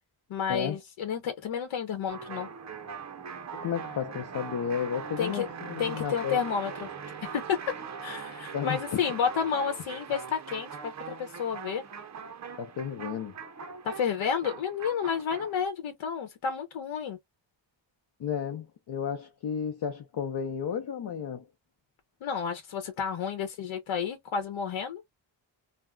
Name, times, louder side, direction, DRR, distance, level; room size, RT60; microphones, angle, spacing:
voice 1, 0.3-2.5 5.2-5.5 5.8-6.9 7.3-7.6 8.0-11.8 13.8-17.2 22.2-25.0, left 7 dB, 80° left, 0.9 m, -31 dB
sound 1, 2.1-15.6, right 6 dB, 40° right, 0.5 m, -41 dB
voice 2, 3.5-6.4 8.5-9.1 12.6-13.3 18.2-21.5, left 7 dB, 55° left, 0.6 m, -33 dB
3.4 x 2.1 x 2.2 m
wide cardioid pair, 180°, 47 cm